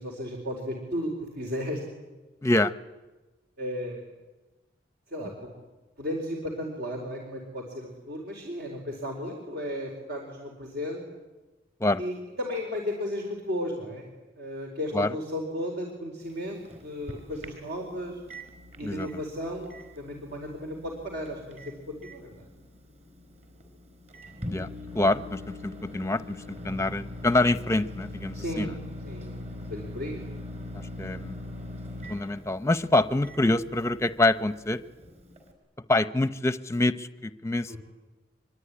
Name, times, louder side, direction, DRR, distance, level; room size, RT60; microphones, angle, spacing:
voice 1, 0.0-1.8 3.6-4.0 5.1-5.5 6.0-11.0 12.0-14.1 14.4-18.2 18.8-19.7 20.0-22.5 28.3-28.8 29.0-30.2 37.7-37.8, left 1 dB, 60° right, 1 dB, 4.6 m, -34 dB
voice 2, 2.4-2.7 11.8-12.0 14.9-15.1 18.8-19.2 24.5-24.7 24.9-28.7 30.7-31.4 32.1-34.8 35.9-37.8, left 2 dB, 15° left, 13 dB, 0.8 m, -26 dB
Microwave oven, 16.2-35.5, left 1 dB, 40° right, 5.0 m, -42 dB
25.0 x 23.5 x 9.9 m, 1.2 s
head